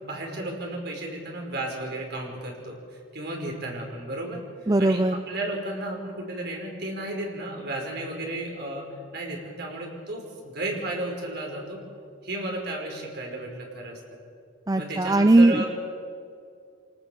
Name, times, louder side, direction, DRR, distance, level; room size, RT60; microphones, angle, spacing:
voice 1, 0.0-4.4 4.8-8.8 9.1-11.8 12.2-14.0 14.7-15.7, right 1 dB, 55° right, 0 dB, 5.0 m, -33 dB
voice 2, 4.7-5.2 14.7-15.6, right 2 dB, 20° right, 9 dB, 0.6 m, -19 dB
26.5 x 19.0 x 7.1 m, 2.3 s
head